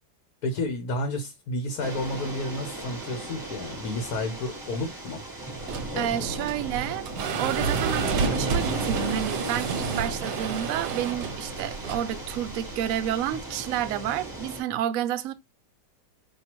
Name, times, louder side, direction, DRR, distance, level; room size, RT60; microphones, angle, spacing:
voice 1, 0.4-5.3 5.9-6.4, left 2 dB, 65° left, 1.3 m, -31 dB
sound 1, 1.8-14.6, right 1 dB, 15° right, 1.1 m, -35 dB
sound 2, 5.5-13.4, right 6 dB, 85° right, 1.3 m, -31 dB
voice 2, 6.0-7.1 7.4-15.3, right 11 dB, 70° right, 0.8 m, -30 dB
5.2 x 2.7 x 3.0 m
omnidirectional pair, 1.8 m